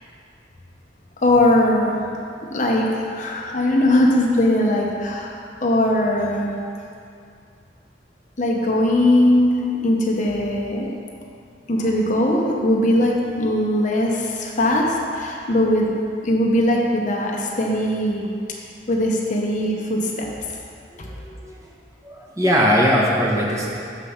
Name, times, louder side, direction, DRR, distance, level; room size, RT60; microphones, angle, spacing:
voice 1, 1.2-2.0 2.4-5.3 5.6-6.6 8.4-9.5 9.8-10.9 11.7-15.9 16.2-18.3 18.9-20.3 21.0-21.1, left 1 dB, 45° left, -1 dB, 0.8 m, -20 dB
voice 2, 21.0-21.6 22.0-23.7, equal, 20° right, -4 dB, 1.0 m, -20 dB
6.5 x 5.1 x 5.7 m, 2.4 s
head